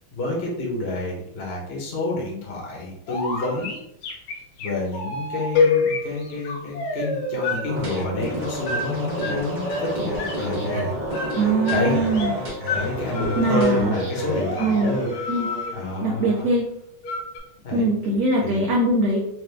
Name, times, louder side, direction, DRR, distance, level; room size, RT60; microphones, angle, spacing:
voice 1, 0.1-3.8 4.6-10.9 11.7-12.0 12.7-15.1 15.7-16.5 17.6-17.9 18.4-18.6, left 2 dB, 40° left, -2 dB, 0.9 m, -28 dB
sound 1, 3.1-7.6 8.6-8.8 9.1-10.4 10.6-12.4 12.7-12.8 13.1-15.7 17.0-17.4, left 1 dB, 90° left, 1.7 m, -30 dB
sound 2, 5.6-7.6, left 5 dB, 70° left, 1.2 m, -23 dB
sound 3, 7.7-16.0, equal, 55° right, 0.5 m, -30 dB
voice 2, 11.3-12.4 13.3-14.0 14.6-15.0 15.3-15.5 16.0-16.7 17.7-19.2, right 2 dB, 70° right, -2 dB, 0.8 m, -22 dB
4.8 x 2.2 x 3.4 m, 0.79 s
omnidirectional pair, 2.3 m